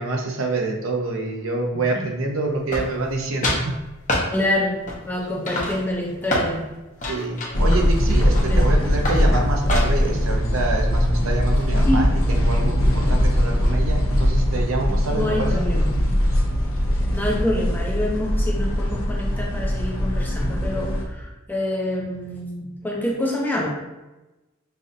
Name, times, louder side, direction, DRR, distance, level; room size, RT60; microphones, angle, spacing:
voice 1, 0.0-3.7 7.1-15.6 16.1-16.2, right 2 dB, 90° right, 1 dB, 0.7 m, -26 dB
voice 2, 1.7-2.1 4.3-6.7 7.5-7.6 8.5-8.7 11.8-12.2 14.9-16.0 17.1-23.7, left 1 dB, 10° left, -2 dB, 0.6 m, -27 dB
sound 1, 2.7-3.2 3.4-3.7 4.1-4.3 4.9-5.2 5.5-6.5 7.0-8.6 9.0-9.3 9.7-10.1, left 1 dB, 40° left, 0.8 m, -26 dB
sound 2, 7.5-21.0, equal, 80° left, 0.8 m, -21 dB
5.5 x 2.5 x 2.7 m, 1.0 s
head